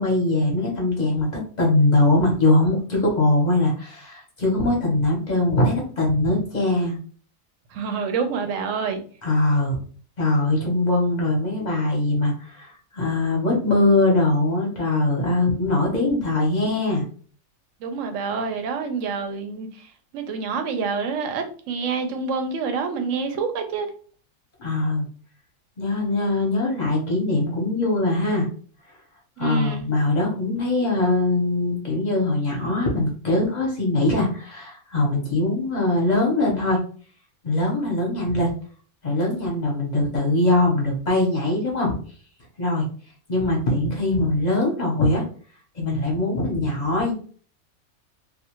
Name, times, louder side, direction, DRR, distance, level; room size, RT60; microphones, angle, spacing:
voice 1, 0.0-7.0 9.2-9.8 10.2-17.0 24.6-25.1 25.8-28.5 29.4-36.8 37.4-38.5 39.0-42.0 42.6-42.9 43.3-45.2 45.7-47.1, left 2 dB, 40° left, 0.8 m, -22 dB
voice 2, 7.7-9.0 17.8-19.9 20.1-23.9 29.4-29.9, right 5 dB, 70° right, 0.9 m, -27 dB
2.5 x 2.3 x 2.9 m
omnidirectional pair, 1.4 m